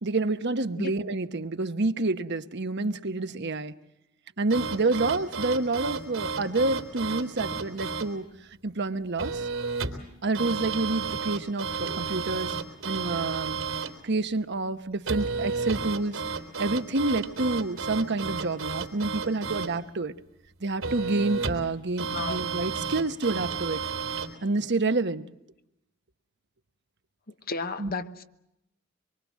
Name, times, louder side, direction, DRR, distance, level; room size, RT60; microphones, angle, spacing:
voice 1, 0.0-3.7 4.4-8.3 8.6-9.5 10.2-13.6 14.0-16.2 16.6-20.1 20.6-23.8 24.4-25.3 27.8-27.9, right 3 dB, 60° right, 1.1 m, -28 dB
sound 1, 4.5-8.1 9.2-10.1 10.3-14.0 15.1-19.8 20.8-21.7 22.0-24.3, right 5 dB, 85° right, 3.6 m, -32 dB
voice 2, 27.5-28.2, left 3 dB, 50° left, 1.1 m, -33 dB
25.0 x 23.5 x 7.4 m
head